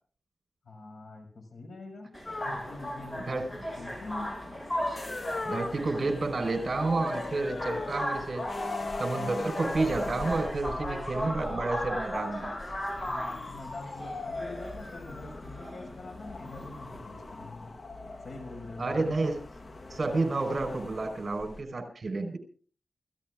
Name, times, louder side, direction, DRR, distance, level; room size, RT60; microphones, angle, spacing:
voice 1, 0.6-2.1 2.4-4.3 13.0-17.7 18.2-19.1, left 2 dB, 70° left, 4 dB, 6.8 m, -44 dB
sound 1, 2.1-17.0, equal, 25° left, 7.8 m, -37 dB
sound 2, 2.3-21.6, left 2 dB, 45° left, 1.2 m, -40 dB
voice 2, 5.4-8.5 9.0-12.5 18.8-19.4 19.9-22.4, right 3 dB, 50° right, 6 dB, 4.9 m, -30 dB
29.0 x 16.0 x 2.5 m, 0.43 s
wide cardioid pair, 90°, 0 cm